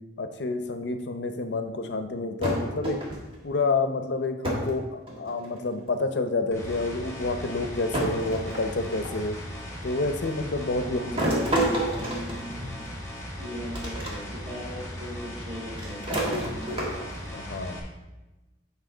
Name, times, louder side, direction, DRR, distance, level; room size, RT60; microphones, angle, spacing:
voice 1, 0.2-3.0 3.4-9.4 9.8-11.0 17.3-17.8, left 3 dB, 75° left, 8 dB, 0.6 m, -29 dB
sound 1, 2.4-3.4 4.4-4.8 5.1-5.7 6.7-6.8 7.9-9.2 11.2-13.0 13.7-14.1 14.5-14.6 15.8-17.3, right 1 dB, 30° right, 1.5 m, -29 dB
sound 2, 6.5-17.8, equal, 15° left, 1.2 m, -38 dB
voice 2, 10.8-11.5 13.4-16.0, equal, 50° right, -9 dB, 1.8 m, -38 dB
7.4 x 5.4 x 3.8 m, 1.1 s
head